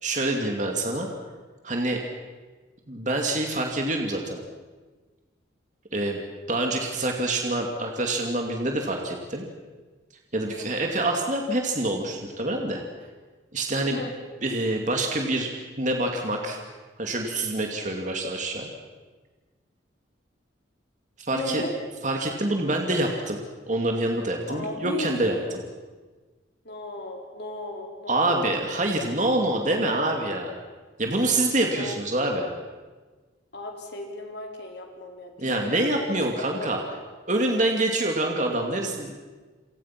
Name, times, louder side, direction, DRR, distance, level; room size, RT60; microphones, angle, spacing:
voice 1, 0.0-1.1 1.6-2.0 2.9-4.4 5.9-6.2 6.5-9.4 10.3-12.8 13.5-14.0 14.4-16.6 17.0-18.7 21.3-21.6 22.0-23.4 23.7-25.4 28.1-30.6 31.0-32.5 35.4-36.8 37.3-39.1, right 2 dB, 40° right, 2 dB, 2.5 m, -26 dB
voice 2, 21.3-21.7 24.5-25.5 26.6-28.5 31.7-32.0 33.5-36.7, left 1 dB, 55° left, 2 dB, 4.4 m, -36 dB
29.0 x 24.5 x 6.0 m, 1.3 s
head